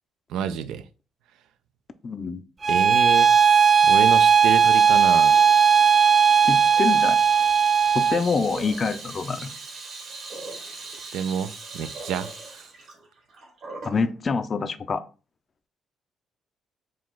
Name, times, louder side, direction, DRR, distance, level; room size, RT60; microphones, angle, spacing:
voice 1, 0.3-0.8 2.7-3.3 3.8-5.4 11.1-12.7, right 9 dB, 90° right, 0.4 m, -28 dB
voice 2, 2.0-2.4 6.4-7.2 7.9-9.5 13.8-15.0, left 4 dB, 40° left, 0.4 m, -26 dB
Bowed string instrument, 2.6-8.2, right 7 dB, 30° right, 0.5 m, -17 dB
Water tap faucet / Sink (filling or washing), 2.7-14.0, right 3 dB, 65° right, 1.9 m, -40 dB
4.9 x 2.3 x 3.7 m
cardioid pair, 90°, 0 cm